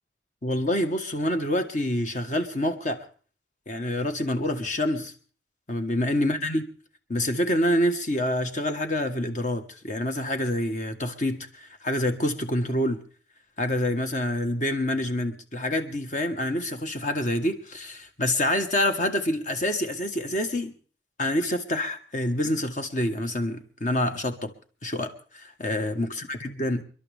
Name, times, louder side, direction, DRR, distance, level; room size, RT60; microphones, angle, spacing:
voice 1, 0.4-3.0 3.7-5.1 5.7-6.7 7.1-13.0 13.6-20.7 21.2-24.5 24.8-26.8, left 1 dB, 45° left, 7 dB, 1.4 m, -27 dB
29.0 x 11.5 x 3.5 m, 0.42 s
head